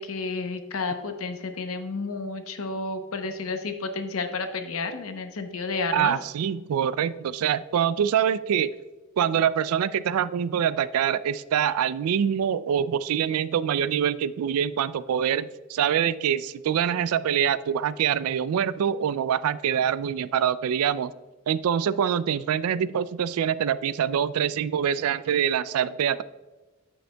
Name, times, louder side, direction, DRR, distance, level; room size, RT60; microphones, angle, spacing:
voice 1, 0.0-6.1, left 3 dB, 80° left, 7 dB, 0.8 m, -31 dB
voice 2, 5.9-8.7 9.2-21.1 21.5-26.2, right 8 dB, 90° right, 16 dB, 0.3 m, -25 dB
8.8 x 7.7 x 2.2 m, 1.2 s
head